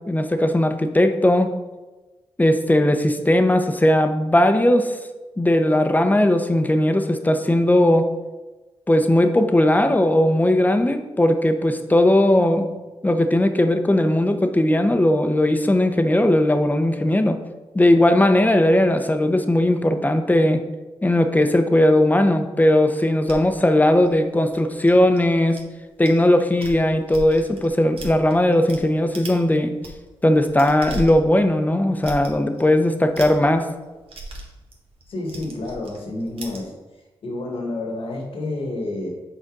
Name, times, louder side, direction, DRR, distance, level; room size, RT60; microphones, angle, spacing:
voice 1, 0.1-1.5 2.4-4.9 5.4-8.1 8.9-12.7 13.0-17.4 17.7-20.6 21.0-25.6 26.0-29.7 30.2-33.7, left 1 dB, 15° left, 7 dB, 0.7 m, -18 dB
sound 1, 23.3-25.6 26.0-26.2 26.5-28.8 29.1-29.4 29.7-36.6, right 1 dB, 70° right, 1.3 m, -37 dB
voice 2, 35.1-36.7 37.2-39.1, left 2 dB, 65° left, 0 dB, 1.6 m, -29 dB
6.4 x 4.2 x 3.8 m, 1.2 s
supercardioid pair, 50°, 10 cm